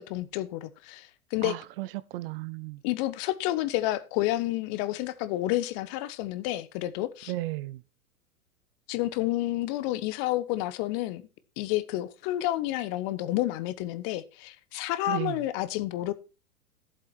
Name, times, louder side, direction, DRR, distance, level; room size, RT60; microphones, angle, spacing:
voice 1, 0.0-1.6 2.8-7.3 8.9-11.2 11.6-16.1, left 16 dB, 40° left, 1.2 m, -30 dB
voice 2, 1.4-2.8 7.3-7.8 15.1-15.4, right 18 dB, 40° right, 0.7 m, -34 dB
14.0 x 7.8 x 4.4 m
figure-of-eight pair, 105°, 44 cm